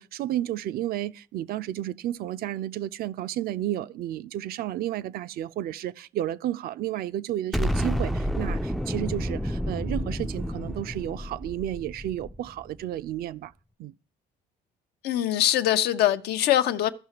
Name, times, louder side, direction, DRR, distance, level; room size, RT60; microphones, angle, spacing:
voice 1, 0.0-13.5 13.8-13.9, right 12 dB, 65° right, 0.4 m, -32 dB
Explosion, 7.5-12.7, equal, ahead, 0.3 m, -30 dB
voice 2, 15.0-16.9, left 12 dB, 75° left, 0.6 m, -23 dB
15.5 x 5.7 x 2.9 m
cardioid pair, 110°, 17 cm